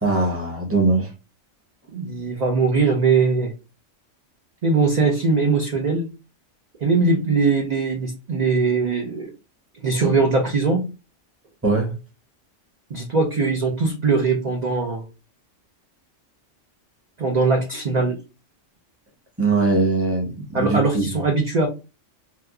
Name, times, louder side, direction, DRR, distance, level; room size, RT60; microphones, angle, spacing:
voice 1, 0.0-1.1 11.6-11.9 19.4-21.2, right 3 dB, 15° right, 0.8 m, -21 dB
voice 2, 1.9-3.5 4.6-6.1 6.8-9.3 9.8-10.9 12.9-15.0 17.2-18.2 20.5-21.7, right 4 dB, 50° right, 0.5 m, -21 dB
2.9 x 2.2 x 3.5 m
omnidirectional pair, 1.3 m